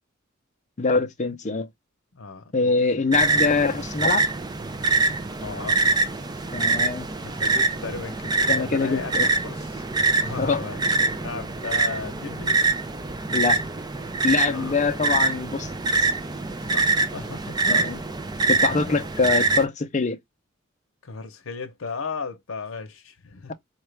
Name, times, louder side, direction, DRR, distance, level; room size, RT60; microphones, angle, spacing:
voice 1, 0.8-1.7 2.5-4.2 6.5-7.1 8.5-9.3 10.4-10.6 13.3-13.6 14.2-15.7 16.0-16.1 17.7-18.0 18.5-20.2, left 4 dB, 35° left, 0.6 m, -24 dB
voice 2, 2.1-2.8 5.4-5.8 7.2-9.1 9.4-9.8 10.2-10.8 11.1-12.6 14.5-14.7 16.6-17.9 18.7-19.0 21.0-23.5, left 4 dB, 85° left, 0.8 m, -35 dB
sound 1, 3.1-19.7, right 3 dB, 20° right, 0.5 m, -24 dB
4.5 x 2.5 x 3.2 m
head